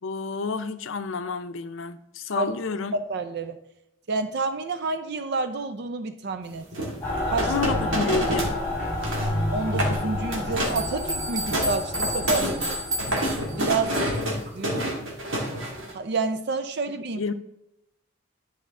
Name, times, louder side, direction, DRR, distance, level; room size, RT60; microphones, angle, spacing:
voice 1, 0.0-2.9 7.5-8.6 17.2-17.3, left 4 dB, 70° left, 10 dB, 0.6 m, -29 dB
voice 2, 2.9-3.6 4.1-6.7 7.3-7.5 7.9-8.0 9.5-12.8 13.5-14.0 14.5-14.9 15.9-17.3, right 3 dB, 55° right, 10 dB, 0.5 m, -29 dB
sound 1, 6.7-8.6 8.9-9.3 9.7-10.0 10.3-10.9 11.2-15.9, right 1 dB, 75° right, 1.9 m, -28 dB
Mechanical fan, 7.0-13.8, left 1 dB, 10° left, 3.3 m, -30 dB
sound 2, 10.6-14.3, equal, 20° right, 1.1 m, -32 dB
10.5 x 5.0 x 3.6 m, 0.85 s
head